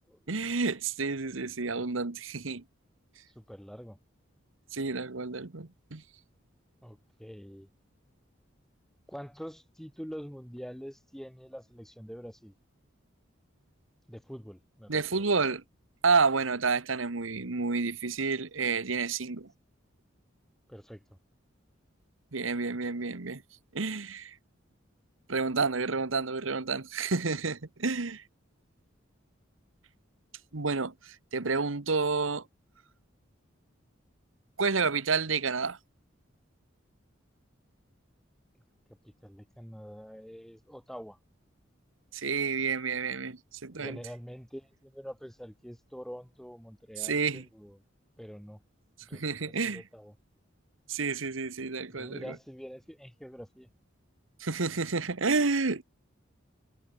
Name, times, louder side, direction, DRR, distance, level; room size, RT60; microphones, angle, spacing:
voice 1, 0.3-2.6 4.7-6.0 14.9-15.6 16.0-19.5 22.3-23.4 23.7-24.4 25.3-28.2 30.5-32.4 34.6-35.8 42.1-44.0 47.0-47.4 49.1-49.8 50.9-52.3 54.4-55.8, right 4 dB, 85° right, 1.3 m, -30 dB
voice 2, 3.3-4.0 6.8-7.7 9.1-12.5 14.1-15.2 20.7-21.0 39.0-41.2 43.7-47.8 48.2-48.6 49.0-50.1 51.9-53.7, equal, ahead, 2.9 m, -45 dB
head